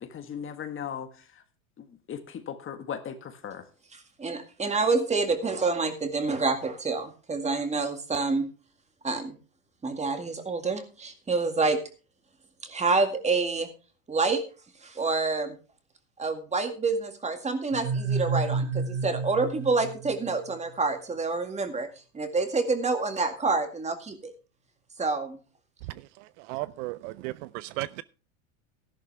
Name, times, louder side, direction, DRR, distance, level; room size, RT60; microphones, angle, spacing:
voice 1, 0.0-1.4 1.8-3.7, left 8 dB, 30° left, 1.6 m, -38 dB
voice 2, 4.2-8.5 9.0-9.4 9.8-11.8 12.6-13.7 14.1-14.4 14.8-15.6 16.2-21.9 22.1-24.3 25.0-25.4, right 3 dB, 15° right, 2.0 m, -27 dB
sound 1, 17.7-20.5, right 4 dB, 40° right, 1.1 m, -30 dB
voice 3, 26.5-28.0, right 19 dB, 60° right, 0.6 m, -34 dB
13.0 x 11.5 x 3.4 m
supercardioid pair, 115°, 42 cm